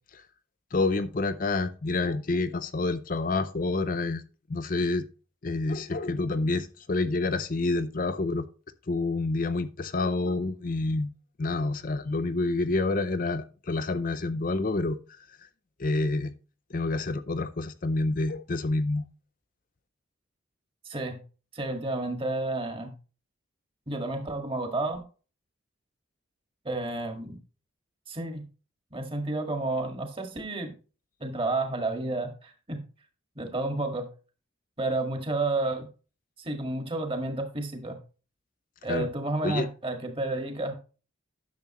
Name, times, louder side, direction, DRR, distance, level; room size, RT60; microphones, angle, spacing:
voice 1, 0.7-4.2 4.5-5.1 5.4-8.5 8.9-11.1 11.4-15.5 15.8-16.3 16.7-19.0 38.9-39.1 39.4-39.7, left 3 dB, 40° left, 11 dB, 0.5 m, -28 dB
voice 2, 20.8-21.2 21.5-22.9 23.9-25.0 26.7-27.4 28.1-28.5 28.9-30.7 31.2-32.8 33.4-34.1 34.8-35.9 36.4-38.0 38.8-40.7, right 2 dB, 25° right, 5 dB, 1.7 m, -31 dB
10.5 x 7.0 x 3.0 m, 0.35 s
head